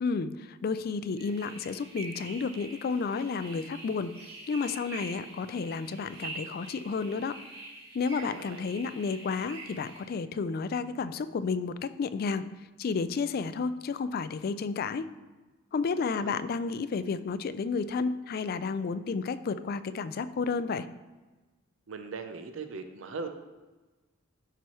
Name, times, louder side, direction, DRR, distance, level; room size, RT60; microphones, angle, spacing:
voice 1, 0.0-4.1 4.5-7.4 7.9-12.4 12.8-15.1 15.7-20.9, left 4 dB, 45° left, 13 dB, 0.3 m, -31 dB
sound 1, 1.2-10.0, right 2 dB, 50° right, 2.4 m, -45 dB
voice 2, 8.2-8.7 15.9-16.3 21.9-23.3, right 4 dB, 75° right, 7 dB, 0.6 m, -40 dB
11.5 x 4.6 x 3.1 m, 1.2 s
head